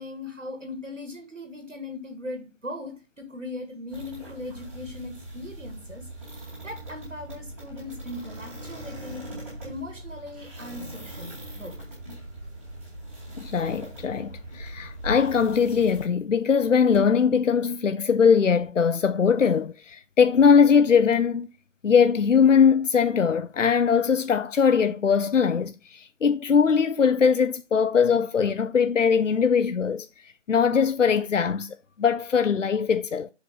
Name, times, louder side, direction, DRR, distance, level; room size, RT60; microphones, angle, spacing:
voice 1, 0.0-9.2 9.6-11.8, left 2 dB, 85° right, 2.3 m, -39 dB
sound 1, 3.9-16.0, right 1 dB, 10° right, 2.2 m, -40 dB
voice 2, 13.4-21.5 21.8-33.3, left 6 dB, 80° left, 0.6 m, -21 dB
6.5 x 5.2 x 5.2 m
figure-of-eight pair, 170°, 37 cm